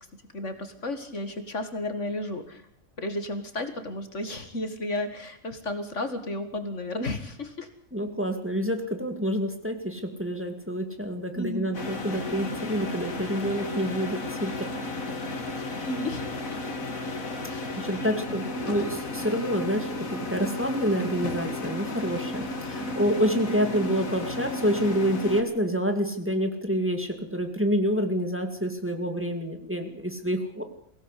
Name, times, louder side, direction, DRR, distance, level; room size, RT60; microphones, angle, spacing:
voice 1, 0.3-2.6 3.0-7.7 11.3-11.7 12.1-12.2 15.5-16.8 17.5-18.5, left 1 dB, 60° left, 8 dB, 2.3 m, -33 dB
voice 2, 7.9-14.7 17.5-30.6, equal, 10° right, 5 dB, 2.4 m, -28 dB
sound 1, 11.7-25.4, left 2 dB, 75° left, 2.7 m, -33 dB
22.5 x 17.0 x 8.3 m, 0.63 s
omnidirectional pair, 1.5 m